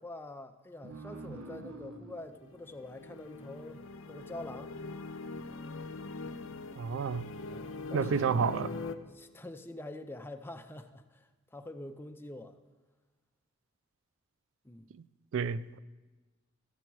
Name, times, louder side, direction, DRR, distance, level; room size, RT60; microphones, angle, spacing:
voice 1, 0.0-4.7 7.5-8.6 9.1-12.6 14.6-14.9, left 2 dB, 10° left, 0.4 m, -46 dB
sound 1, 0.8-4.0, right 2 dB, 85° right, 0.9 m, -48 dB
sound 2, 2.4-9.0, left 3 dB, 65° left, 0.5 m, -42 dB
voice 2, 6.8-7.3 7.9-8.7 15.3-15.8, right 6 dB, 65° right, 0.3 m, -30 dB
14.0 x 7.1 x 4.6 m
head